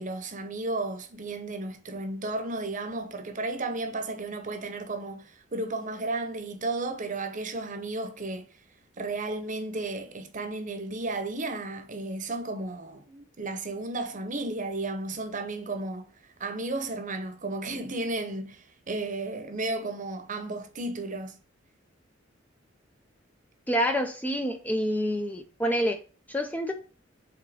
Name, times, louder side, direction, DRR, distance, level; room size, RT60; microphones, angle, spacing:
voice 1, 0.0-8.5 9.0-16.1 16.4-21.4, right 2 dB, 40° right, 0.9 m, -33 dB
voice 2, 23.7-26.0 26.3-26.7, equal, 10° left, 0.5 m, -27 dB
5.0 x 4.0 x 5.0 m
head